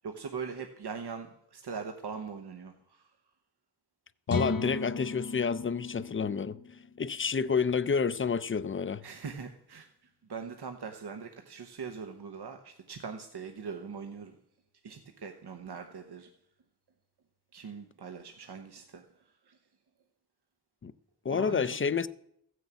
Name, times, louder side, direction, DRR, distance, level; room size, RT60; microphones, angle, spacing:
voice 1, 0.0-3.1 9.0-9.9 10.3-14.3 14.8-16.3 17.5-19.0 19.5-19.6 21.3-21.6, right 5 dB, 85° right, 1.0 m, -41 dB
sound 1, 4.3-8.1, left 3 dB, 60° left, 1.1 m, -37 dB
voice 2, 4.3-6.6 7.0-9.0 20.8-20.9 21.2-22.1, left 5 dB, 35° left, 0.5 m, -29 dB
15.0 x 6.4 x 8.1 m
wide cardioid pair, 100°, 39 cm